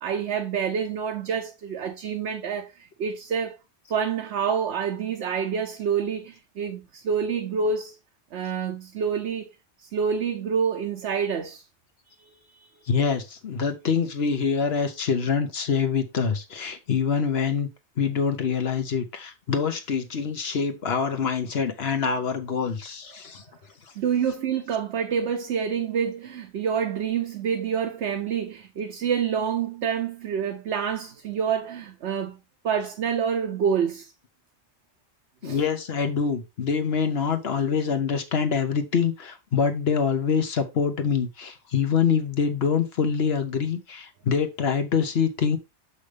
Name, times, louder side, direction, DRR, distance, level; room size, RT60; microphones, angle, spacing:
voice 1, 0.0-3.6 3.9-8.0 8.3-9.5 9.8-11.6 12.2-12.7 24.0-32.4 32.6-34.1 35.4-35.6, right 7 dB, 70° right, 1.0 m, -27 dB
voice 2, 12.9-17.7 18.0-23.4 35.4-45.6, left 6 dB, 65° left, 1.1 m, -25 dB
6.5 x 5.5 x 3.3 m
omnidirectional pair, 1.2 m